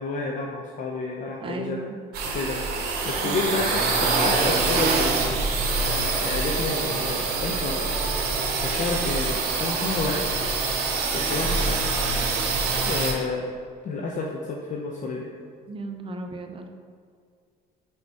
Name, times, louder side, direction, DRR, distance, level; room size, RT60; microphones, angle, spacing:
voice 1, 0.0-1.8 2.3-2.6 3.0-5.5 5.9-6.0 6.2-8.0 8.6-10.3 11.1-11.9 12.8-13.5 13.8-15.3, left 3 dB, 50° left, -1 dB, 0.6 m, -30 dB
voice 2, 1.4-2.0 3.2-3.5 15.7-16.7, right 3 dB, 30° right, 4 dB, 0.6 m, -35 dB
sound 1, 2.1-13.1, right 3 dB, 70° right, 1.1 m, -25 dB
4.8 x 4.2 x 4.6 m, 2.1 s
cardioid pair, 110°, 17 cm